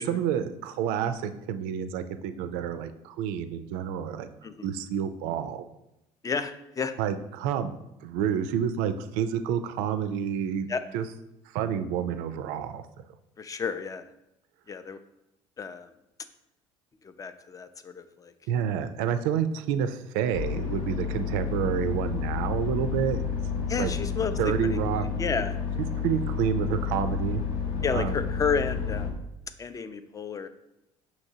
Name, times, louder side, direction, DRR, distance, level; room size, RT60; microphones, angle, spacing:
voice 1, 0.0-4.3 4.6-5.7 7.0-7.7 8.0-10.7 10.9-11.0 11.5-12.8 18.5-23.2 23.5-23.9 24.4-25.1 26.0-27.4 27.9-28.2, right 8 dB, 75° right, 10 dB, 0.4 m, -29 dB
voice 2, 6.2-6.9 10.7-10.8 13.4-14.0 14.7-15.0 15.6-15.9 17.0-18.3 23.7-24.8 25.2-25.6 27.8-29.2 29.6-30.5, left 5 dB, 25° left, 11 dB, 0.4 m, -31 dB
sound 1, 20.3-29.1, left 6 dB, 85° left, 0.8 m, -30 dB
5.8 x 2.9 x 2.7 m, 0.86 s
supercardioid pair, 80°, 15 cm